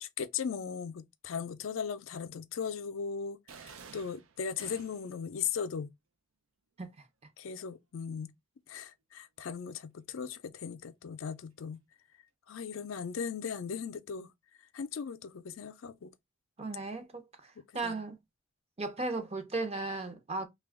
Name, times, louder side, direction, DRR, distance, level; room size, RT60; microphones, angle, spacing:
voice 1, 0.0-3.4 3.6-5.9 7.4-8.3 8.7-11.8 12.5-14.3 14.7-16.1 17.6-18.0, left 6 dB, 75° left, 0.4 m, -38 dB
sound 1, 3.5-5.2, right 6 dB, 85° right, 0.5 m, -51 dB
voice 2, 16.6-18.2 18.8-20.5, right 3 dB, 30° right, 0.6 m, -36 dB
2.8 x 2.3 x 3.4 m
head